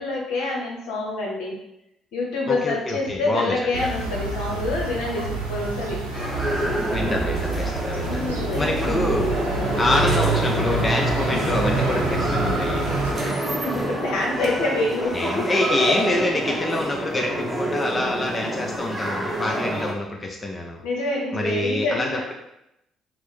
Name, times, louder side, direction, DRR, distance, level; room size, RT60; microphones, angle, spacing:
voice 1, 0.0-1.6 2.1-6.0 8.0-8.8 9.5-9.8 13.2-16.0 16.4-16.5 19.3-19.7 20.8-22.2, left 2 dB, 70° left, -2 dB, 0.8 m, -27 dB
voice 2, 2.5-3.9 6.9-8.3 8.6-9.4 9.8-12.9 15.1-20.8 21.3-22.3, left 2 dB, 30° left, 1 dB, 0.5 m, -26 dB
sound 1, 3.7-13.1, right 3 dB, 90° right, 0.5 m, -28 dB
sound 2, 6.1-19.9, right 1 dB, ahead, 0.9 m, -28 dB
sound 3, 9.9-15.2, right 2 dB, 45° right, 0.8 m, -35 dB
4.4 x 2.0 x 3.2 m, 0.83 s
hypercardioid pair, 50°, 0 cm